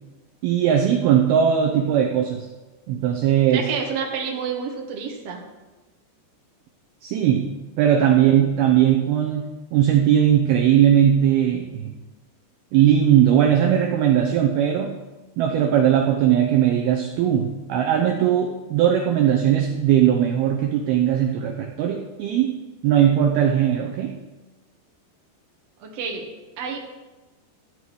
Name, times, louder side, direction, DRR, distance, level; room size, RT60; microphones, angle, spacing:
voice 1, 0.4-2.5 2.9-3.7 7.0-11.9 12.7-15.0 15.4-22.6 22.8-24.2, right 10 dB, 80° right, 2 dB, 2.4 m, -19 dB
voice 2, 3.5-5.4 25.8-26.8, right 6 dB, 50° right, 0 dB, 2.0 m, -29 dB
14.0 x 4.8 x 8.6 m, 1.2 s
omnidirectional pair, 5.2 m